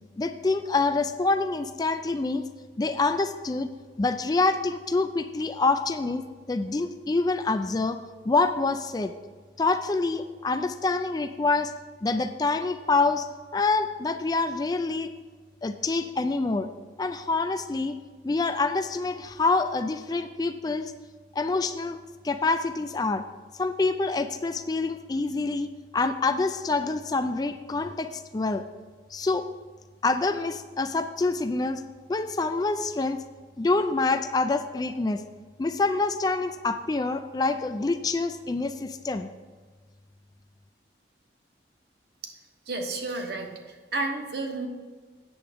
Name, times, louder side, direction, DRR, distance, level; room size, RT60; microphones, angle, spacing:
voice 1, 0.2-2.4 2.8-3.7 4.0-8.0 8.2-9.1 9.6-11.7 12.0-13.3 13.5-15.1 15.6-16.7 17.0-18.0 18.2-20.9 21.3-22.0 22.2-23.3 23.6-28.7 29.1-29.5 30.0-31.8 32.1-33.2 33.6-35.2 35.6-39.3, left 3 dB, 20° left, 9 dB, 0.3 m, -26 dB
voice 2, 42.7-43.5 43.9-44.7, right 2 dB, 65° right, 3 dB, 1.2 m, -31 dB
8.6 x 7.2 x 5.1 m, 1.4 s
head